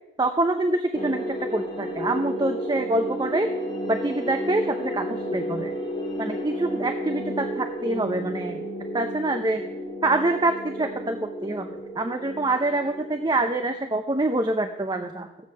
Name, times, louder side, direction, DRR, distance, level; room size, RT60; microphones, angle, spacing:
voice 1, 0.2-3.5 3.9-5.7 6.2-8.6 8.9-9.6 10.0-11.7 12.0-15.3, right 2 dB, 20° right, 6 dB, 0.6 m, -26 dB
sound 1, 0.9-13.7, equal, 25° left, 2.0 m, -32 dB
14.5 x 7.6 x 6.2 m, 0.94 s
head